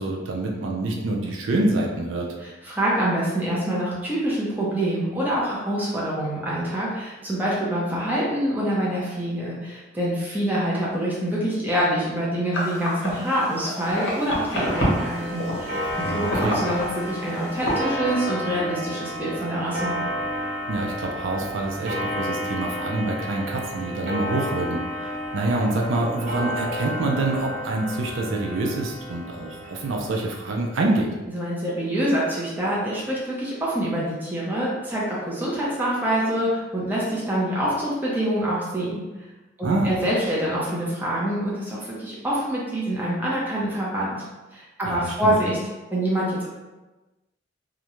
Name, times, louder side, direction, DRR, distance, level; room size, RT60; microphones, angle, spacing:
voice 1, 0.0-2.3 16.0-16.6 20.7-31.1 39.6-39.9 44.9-45.3, right 2 dB, 75° right, 0 dB, 0.4 m, -26 dB
voice 2, 2.4-19.9 31.3-39.0 39.6-44.2 44.5-45.6 45.9-46.5, right 1 dB, 10° right, -7 dB, 0.6 m, -26 dB
sound 1, 12.5-17.8, equal, 65° left, 0.8 m, -29 dB
Clock, 14.5-30.7, equal, 40° right, 0.8 m, -31 dB
2.4 x 2.1 x 2.9 m, 1.1 s
head